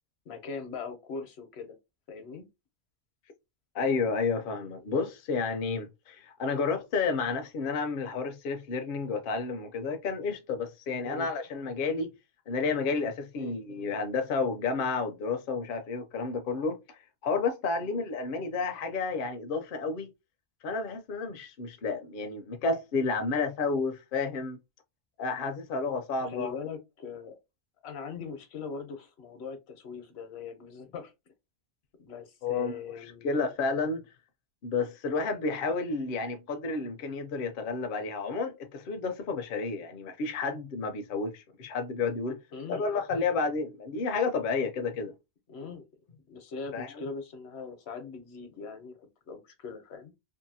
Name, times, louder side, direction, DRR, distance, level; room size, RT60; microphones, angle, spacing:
voice 1, 0.3-1.8 2.1-2.4 11.0-11.3 13.3-13.5 17.8-18.0 26.2-27.4 27.8-31.1 32.0-33.3 42.5-42.9 45.5-45.8 46.3-50.1, left 5 dB, 80° left, 1.0 m, -41 dB
voice 2, 3.7-12.1 12.5-20.1 20.6-24.6 25.2-26.6 32.4-34.1 34.6-42.4 42.7-45.1 46.7-47.0, left 4 dB, 65° left, 0.7 m, -31 dB
2.7 x 2.6 x 2.6 m
omnidirectional pair, 1.1 m